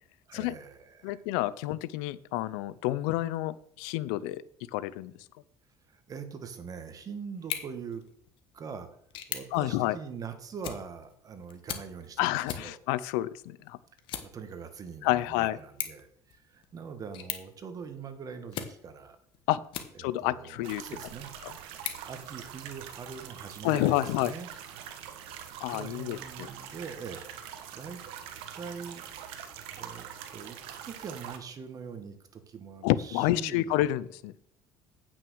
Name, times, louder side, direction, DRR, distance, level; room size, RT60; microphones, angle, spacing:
voice 1, 0.3-1.2 5.9-8.0 8.5-8.9 9.3-12.8 14.2-19.2 19.9-21.4 22.0-24.5 25.7-27.2 27.7-28.0 28.5-29.1 29.8-33.8, right 6 dB, 40° right, 9 dB, 1.6 m, -43 dB
voice 2, 1.0-4.4 4.7-5.1 9.5-10.0 12.2-13.8 15.0-15.6 19.5-19.6 20.0-20.8 23.6-24.3 25.6-26.5 32.8-34.3, left 15 dB, 90° left, 18 dB, 0.5 m, -29 dB
sound 1, 7.3-20.3 20.8-22.9, left 10 dB, 65° left, 1.3 m, -43 dB
sound 2, 20.6-31.4, right 9 dB, 80° right, 1.2 m, -44 dB
8.7 x 6.2 x 6.3 m, 0.66 s
supercardioid pair, 100°, 9 cm